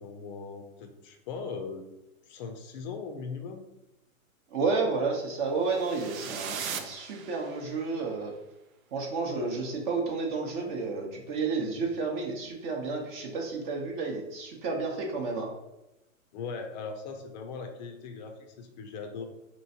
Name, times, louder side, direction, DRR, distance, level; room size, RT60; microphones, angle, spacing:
voice 1, 0.0-1.9 2.3-3.7 16.3-19.3, left 5 dB, 35° left, 5 dB, 0.5 m, -39 dB
voice 2, 4.5-8.3 8.9-15.5, right 4 dB, 35° right, 0 dB, 0.7 m, -31 dB
sound 1, 5.7-7.9, right 7 dB, 75° right, 0.6 m, -39 dB
4.3 x 3.0 x 2.7 m, 0.95 s
hypercardioid pair, 135°, 42 cm